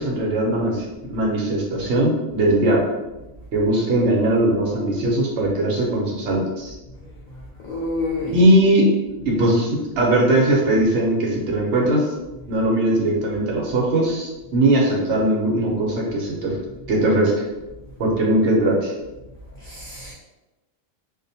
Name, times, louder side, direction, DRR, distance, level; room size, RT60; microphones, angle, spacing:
voice 1, 0.0-2.8 3.5-6.7 8.3-8.9 9.2-12.1 12.5-16.6 16.9-17.3 18.0-18.9, right 1 dB, 65° right, -2 dB, 0.9 m, -20 dB
voice 2, 7.3-8.5 19.6-20.1, left 2 dB, 70° left, -5 dB, 0.4 m, -29 dB
2.5 x 2.1 x 2.6 m, 1.0 s
omnidirectional pair, 1.4 m